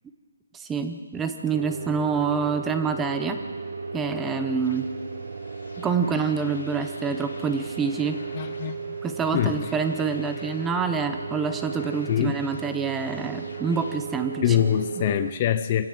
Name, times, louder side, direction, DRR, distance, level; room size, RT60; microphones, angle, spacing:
voice 1, 0.5-3.4 3.9-4.9 5.8-8.2 9.0-14.6, right 5 dB, 5° right, 8 dB, 0.8 m, -27 dB
sound 1, 1.5-15.3, right 5 dB, 60° right, 1.1 m, -35 dB
sound 2, 3.0-14.0, left 4 dB, 80° left, 3.4 m, -48 dB
voice 2, 8.3-9.0 9.3-9.7 12.1-12.3 14.4-15.9, left 11 dB, 25° left, 11 dB, 0.6 m, -24 dB
24.5 x 16.5 x 7.6 m, 1.5 s
hypercardioid pair, 175°, 0 cm